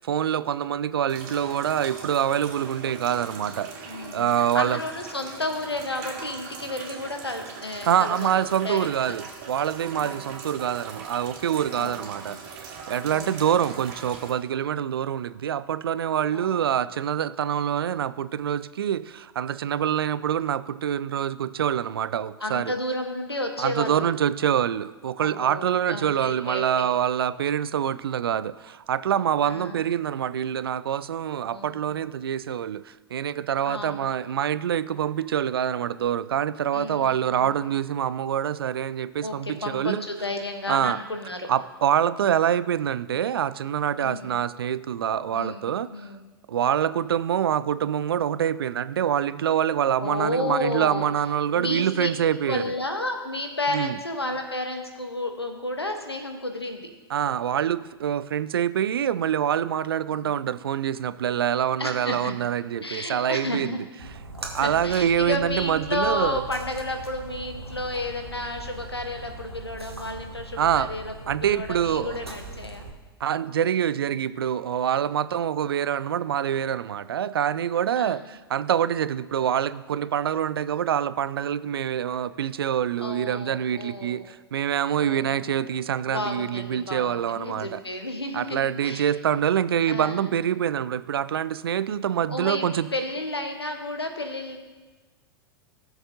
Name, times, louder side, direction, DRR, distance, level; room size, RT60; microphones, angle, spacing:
voice 1, 0.0-4.8 7.9-22.7 23.6-40.0 40.7-41.0 41.5-45.9 46.5-52.6 53.7-54.0 57.1-63.8 64.5-66.4 70.6-70.9 71.3-72.2 73.2-87.8 88.3-92.9, right 9 dB, 70° right, 16 dB, 0.4 m, -25 dB
sound 1, 1.1-14.3, right 5 dB, 45° right, 2.4 m, -41 dB
voice 2, 3.8-8.3 8.6-9.1 9.9-10.3 11.7-12.4 13.1-13.5 16.3-16.8 22.4-24.1 25.2-26.8 29.4-29.8 31.5-32.0 33.7-34.1 36.7-37.5 39.2-41.5 44.0-44.4 45.3-46.2 50.0-51.1 51.5-52.1 52.4-56.9 60.1-60.4 61.8-62.3 62.8-63.8 64.6-72.9 78.0-78.3 83.0-84.3 85.0-85.7 86.1-89.1 89.9-90.4 92.3-92.7 92.9-94.6, left 2 dB, 90° left, 5 dB, 1.2 m, -32 dB
Splash splatter, 64.0-72.9, right 2 dB, 90° right, 1.4 m, -40 dB
16.5 x 7.0 x 2.8 m, 1.3 s
figure-of-eight pair, 95°, 13 cm